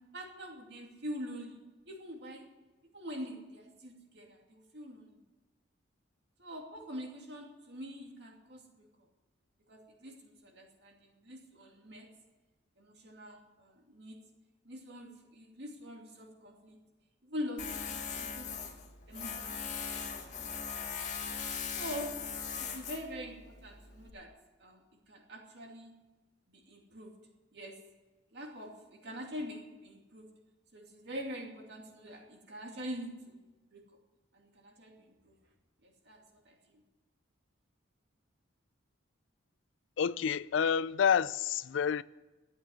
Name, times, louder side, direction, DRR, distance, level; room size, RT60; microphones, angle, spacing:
voice 1, 0.1-1.6 1.9-2.5 2.9-5.1 6.4-8.9 9.7-12.1 12.8-14.2 14.6-16.8 17.2-18.5 19.1-20.4 21.7-22.2 22.6-24.3 24.6-25.9 26.5-27.1 27.5-27.8 28.3-30.3 30.7-33.4 33.7-33.8 34.3-35.3 35.8-36.8, equal, 60° right, 2.6 m, -44 dB
Tools, 17.6-24.1, left 6 dB, 40° left, 1.6 m, -40 dB
voice 2, 40.0-42.0, left 7 dB, 80° left, 0.4 m, -28 dB
13.0 x 8.9 x 9.5 m
head